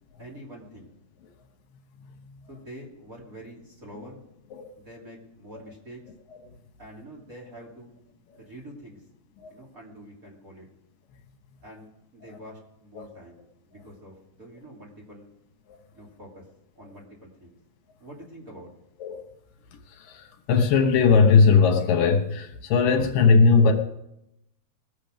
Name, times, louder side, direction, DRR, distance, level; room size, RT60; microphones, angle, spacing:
voice 1, 0.2-0.9 2.5-4.2 4.8-6.0 6.8-7.9 8.4-9.0 9.5-10.7 11.6-15.3 15.9-16.5 16.7-17.6 18.0-18.7, right 1 dB, 25° right, -3 dB, 2.9 m, -45 dB
voice 2, 2.0-2.4 4.5-4.7 6.4-6.5 8.3-8.4 9.4-9.5 12.3-12.4 13.0-13.1 15.7-15.8 16.8-16.9 19.0-19.3 19.9-23.7, left 5 dB, 75° left, 4 dB, 2.8 m, -20 dB
21.0 x 7.7 x 5.2 m, 0.82 s
omnidirectional pair, 4.0 m